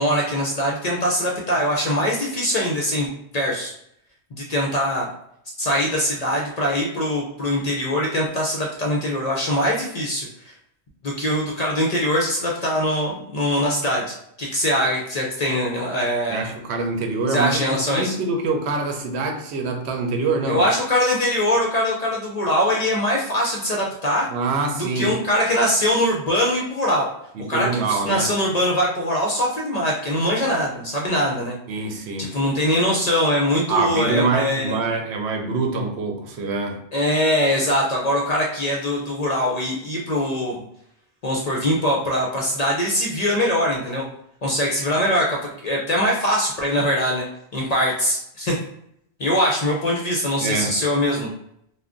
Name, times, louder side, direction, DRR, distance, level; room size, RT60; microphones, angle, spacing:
voice 1, 0.0-3.1 3.3-3.7 4.3-5.1 5.6-10.5 11.0-16.4 17.3-18.2 20.5-24.3 25.0-27.1 27.5-31.5 32.2-34.8 36.9-40.6 41.2-44.1 44.4-47.3 47.5-48.6 49.2-51.3, equal, 50° left, -2 dB, 0.5 m, -22 dB
voice 2, 16.3-20.6 24.3-25.2 27.3-28.4 31.7-32.4 33.7-36.8 50.4-50.8, right 3 dB, 80° right, 4 dB, 0.8 m, -25 dB
2.4 x 2.1 x 3.5 m, 0.73 s
omnidirectional pair, 1.1 m